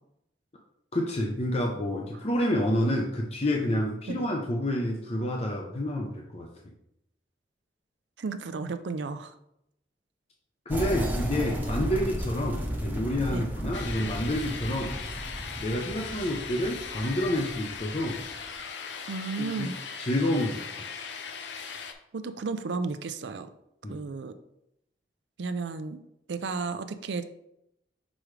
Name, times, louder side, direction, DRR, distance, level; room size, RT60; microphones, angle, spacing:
voice 1, 0.9-6.5 10.7-15.0 15.6-18.2 19.4-20.6 23.8-24.0, left 1 dB, 35° left, 0 dB, 0.6 m, -29 dB
voice 2, 8.2-9.3 11.9-12.1 13.3-13.5 19.1-19.7 22.1-23.5 23.9-24.4 25.4-26.0 26.3-27.4, right 4 dB, 85° right, 11 dB, 0.5 m, -33 dB
sound 1, 10.7-18.4, equal, 10° right, 0.8 m, -34 dB
sound 2, 13.7-21.9, left 6 dB, 90° left, 0.7 m, -39 dB
6.2 x 4.9 x 3.2 m, 0.79 s
head